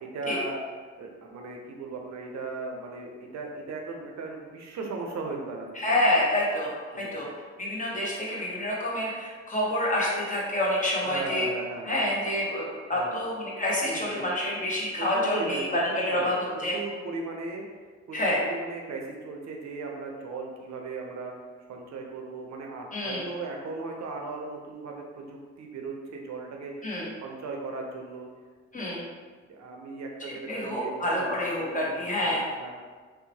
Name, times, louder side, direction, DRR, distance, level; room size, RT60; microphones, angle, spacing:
voice 1, 0.0-0.6 1.0-6.0 6.9-7.4 11.0-12.1 12.9-13.3 13.9-14.3 15.0-17.6 18.1-21.3 21.7-26.9 27.2-28.3 29.5-32.7, right 3 dB, 70° right, 1 dB, 0.6 m, -37 dB
voice 2, 5.8-6.7 7.0-7.3 7.6-11.5 11.9-16.8 18.1-18.4 22.9-23.2 26.8-27.1 28.7-29.0 30.5-32.4, left 1 dB, 25° left, -5 dB, 0.9 m, -27 dB
2.8 x 2.1 x 2.7 m, 1.5 s
supercardioid pair, 50°, 29 cm